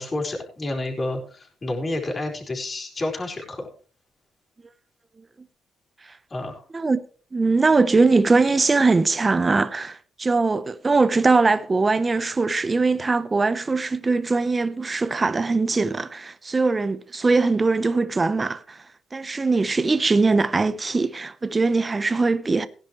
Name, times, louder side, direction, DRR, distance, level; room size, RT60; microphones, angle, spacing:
voice 1, 0.0-3.7 6.3-6.6, left 2 dB, 30° left, 4.4 m, -29 dB
voice 2, 7.3-18.8 19.1-22.7, right 3 dB, 25° right, 0.9 m, -21 dB
17.5 x 10.5 x 3.2 m
cardioid pair, 90°, 0 cm